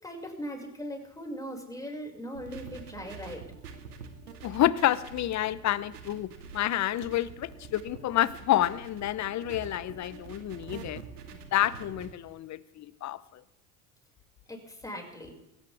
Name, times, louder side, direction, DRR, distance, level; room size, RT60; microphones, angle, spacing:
voice 1, 0.0-3.4 14.5-15.3, equal, 10° left, 0 dB, 6.2 m, -39 dB
sound 1, 2.3-12.1, right 5 dB, 85° right, 2.4 m, -46 dB
voice 2, 4.4-11.0 11.5-13.2, left 13 dB, 40° left, 17 dB, 1.0 m, -29 dB
21.0 x 18.0 x 3.6 m, 0.90 s
hypercardioid pair, 75°, 45 cm